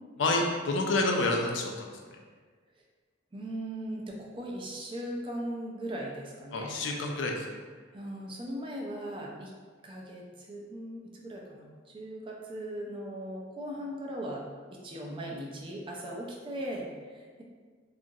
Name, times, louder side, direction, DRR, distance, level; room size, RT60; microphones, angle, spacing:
voice 1, 0.2-1.9 6.5-7.5, left 2 dB, 65° left, 1 dB, 0.4 m, -28 dB
voice 2, 3.3-6.8 7.9-9.5 9.8-11.7 11.9-14.4 14.7-17.4, right 1 dB, 25° right, -2 dB, 0.4 m, -38 dB
2.9 x 2.4 x 2.6 m, 1.5 s
head